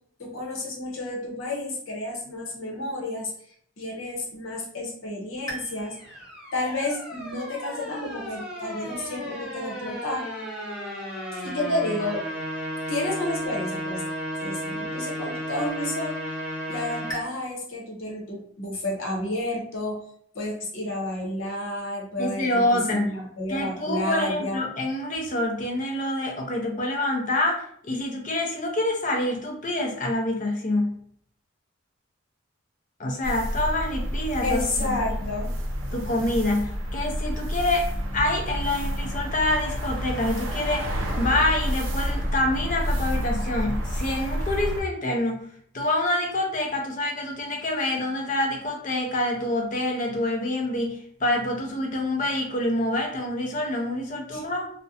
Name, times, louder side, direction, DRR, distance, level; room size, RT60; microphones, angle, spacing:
voice 1, 0.2-3.3 3.8-6.0 6.5-10.3 11.3-12.3 12.9-14.0 14.4-16.2 16.7-20.0 20.3-24.6 34.4-35.6 54.3-54.4, left 1 dB, 85° left, -1 dB, 0.7 m, -31 dB
sound 1, 5.5-17.2, equal, 20° left, 0.8 m, -34 dB
voice 2, 22.2-23.2 23.5-31.0 33.0-35.0 35.9-45.5 45.7-54.7, left 1 dB, 40° left, 1 dB, 0.4 m, -26 dB
sound 2, 33.2-44.8, equal, 90° right, 0.5 m, -29 dB
2.4 x 2.1 x 2.6 m, 0.63 s
head